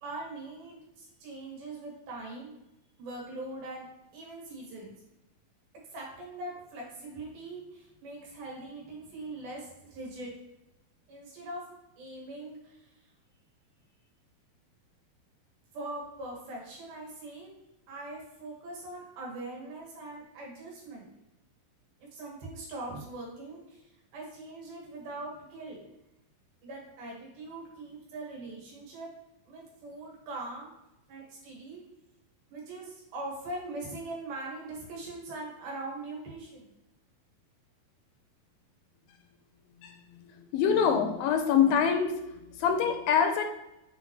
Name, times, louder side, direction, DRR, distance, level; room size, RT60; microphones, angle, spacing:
voice 1, 0.0-2.5 3.0-3.9 4.1-4.9 5.9-10.3 11.1-11.6 12.0-12.9 15.7-17.5 17.9-21.1 22.0-25.8 26.6-29.1 29.5-30.7 31.1-31.8 32.5-36.7, right 2 dB, 80° right, -2 dB, 3.6 m, -41 dB
voice 2, 40.4-43.4, left 7 dB, 85° left, 5 dB, 2.4 m, -25 dB
7.1 x 4.4 x 3.1 m, 0.88 s
omnidirectional pair, 4.3 m